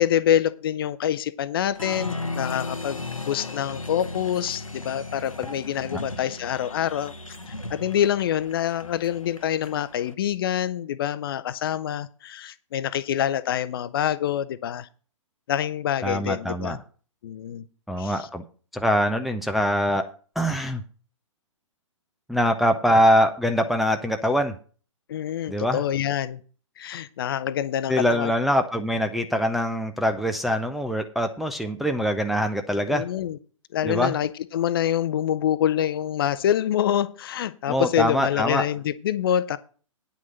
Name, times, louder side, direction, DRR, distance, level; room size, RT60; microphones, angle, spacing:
voice 1, 0.0-7.1 7.7-14.9 15.5-16.8 17.2-17.6 18.0-18.1 25.1-26.4 26.8-28.3 32.9-33.4 33.7-39.6, left 10 dB, 45° left, 15 dB, 0.7 m, -26 dB
Applause, 1.7-10.1, left 2 dB, 90° left, 1.0 m, -36 dB
voice 2, 16.0-16.8 17.9-18.4 18.7-20.0 20.4-20.8 22.3-24.5 25.5-25.8 27.9-33.0 33.8-34.2 37.7-38.6, equal, ahead, 4 dB, 0.5 m, -23 dB
9.5 x 6.3 x 6.7 m, 0.39 s
figure-of-eight pair, 120°, 17 cm